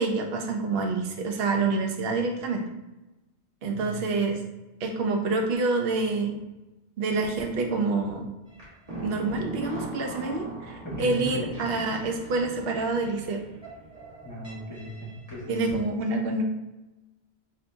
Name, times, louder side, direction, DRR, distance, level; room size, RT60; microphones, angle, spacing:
voice 1, 0.0-2.6 3.6-4.4 4.8-6.4 7.0-8.3 9.0-13.4 15.5-16.4, right 3 dB, 60° right, 2 dB, 0.8 m, -27 dB
voice 2, 3.6-4.0 10.8-11.5 14.2-15.5, left 1 dB, 15° left, -6 dB, 1.2 m, -37 dB
sound 1, 8.5-15.7, right 2 dB, 30° right, 1.5 m, -39 dB
4.0 x 2.8 x 3.4 m, 1.0 s
omnidirectional pair, 1.2 m